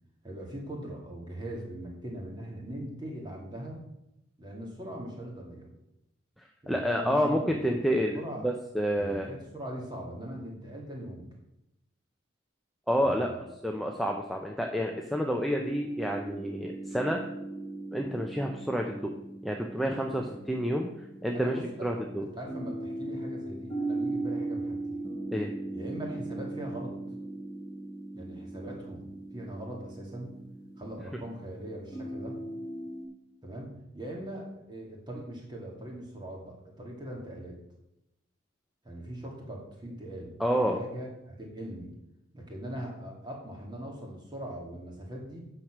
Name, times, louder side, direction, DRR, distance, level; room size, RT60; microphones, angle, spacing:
voice 1, 0.2-3.8 4.4-5.7 6.6-7.7 8.1-8.5 9.0-11.3 13.0-13.4 19.8-20.3 21.3-25.0 25.7-27.0 28.1-29.1 29.3-30.3 30.8-32.4 33.4-37.6 38.8-41.9 42.3-45.4, right 1 dB, 20° right, -1 dB, 2.4 m, -41 dB
voice 2, 6.4-9.3 12.9-13.3 13.6-17.2 17.9-19.1 19.4-20.9 21.2-22.3 25.3-25.5 40.4-40.8, equal, ahead, 1 dB, 0.7 m, -29 dB
sound 1, 15.6-33.1, right 2 dB, 25° left, 2.0 m, -39 dB
9.2 x 6.7 x 6.0 m, 0.86 s
head